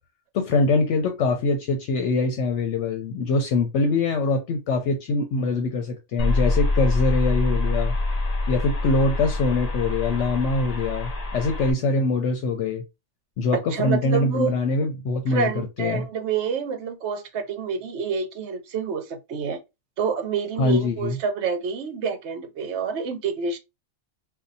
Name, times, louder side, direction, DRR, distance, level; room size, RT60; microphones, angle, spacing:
voice 1, 0.3-7.9 8.5-12.8 13.4-16.1 20.6-21.2, left 3 dB, 70° left, 0.9 m, -23 dB
sound 1, 6.2-11.7, left 2 dB, 45° left, 0.5 m, -25 dB
voice 2, 13.7-14.6 15.3-19.6 20.0-23.6, right 5 dB, 65° right, 0.9 m, -27 dB
2.7 x 2.3 x 3.9 m
omnidirectional pair, 1.3 m